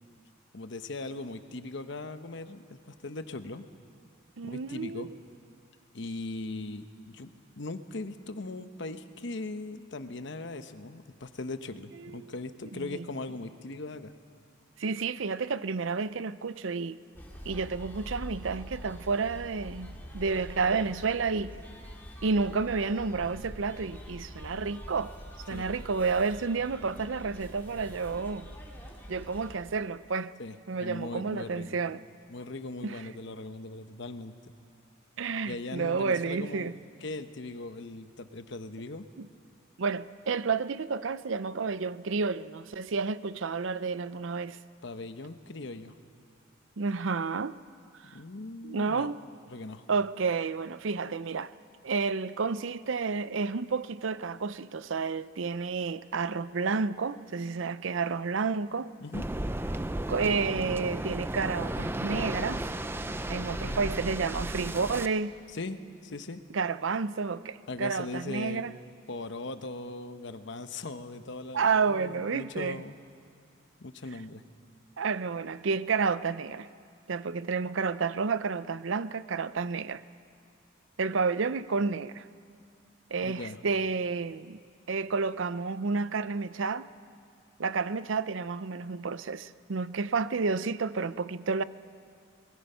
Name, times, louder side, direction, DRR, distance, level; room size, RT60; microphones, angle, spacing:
voice 1, 0.5-3.6 4.4-5.1 5.9-7.3 7.6-14.1 25.5-25.7 30.4-30.6 30.8-31.8 32.3-34.5 35.5-36.7 37.0-39.1 44.8-46.0 48.0-49.1 49.5-49.8 59.0-59.2 63.4-64.0 65.5-66.4 67.7-68.7 69.1-72.9 73.8-74.4 83.2-83.6, left 2 dB, 60° left, 0.9 m, -39 dB
voice 2, 4.4-5.2 12.0-12.3 12.7-13.1 14.8-17.0 17.4-21.5 22.2-25.1 25.5-28.5 29.1-30.3 30.7-32.0 32.8-33.0 35.2-36.7 39.2-39.3 39.8-44.6 46.8-47.6 48.1-48.2 48.6-49.2 49.9-51.5 51.8-58.9 60.1-62.7 63.1-65.3 66.5-68.7 71.5-72.8 75.0-76.7 77.1-80.0 81.0-82.3 83.1-84.6 84.9-86.9 87.6-91.6, right 4 dB, 65° right, 0.6 m, -30 dB
sound 1, 17.1-29.5, equal, 10° left, 2.4 m, -45 dB
Waves surf, 59.1-65.1, right 1 dB, 10° right, 0.5 m, -34 dB
25.5 x 20.5 x 5.6 m
head